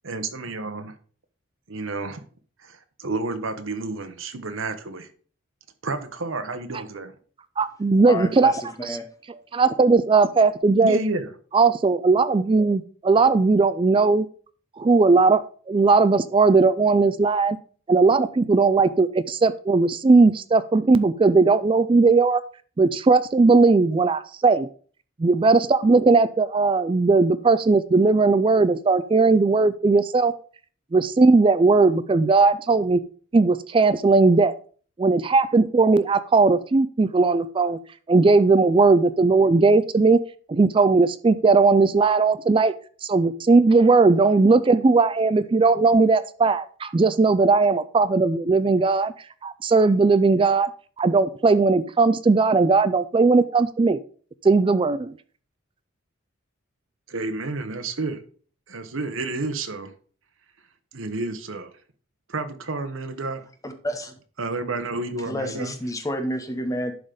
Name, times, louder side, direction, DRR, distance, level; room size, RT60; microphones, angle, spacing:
voice 1, 0.0-1.0 1.7-2.2 2.6-5.1 5.8-7.1 10.8-11.3 57.1-58.2 58.7-59.9 60.9-61.7 62.3-63.4 64.4-65.7, right 3 dB, 70° right, 1.0 m, -30 dB
voice 2, 7.6-8.5 8.8-9.0 9.5-11.0 11.5-14.3 14.8-17.6 17.9-22.4 22.8-24.7 25.2-30.3 30.9-33.0 33.3-34.5 35.0-37.8 38.1-40.2 40.5-42.7 43.0-49.1 49.4-50.7 51.0-54.0 54.4-55.1, right 3 dB, 25° right, 0.3 m, -18 dB
voice 3, 8.1-9.1 63.6-64.1 65.3-66.9, equal, 15° left, 1.0 m, -30 dB
11.0 x 3.9 x 5.0 m
head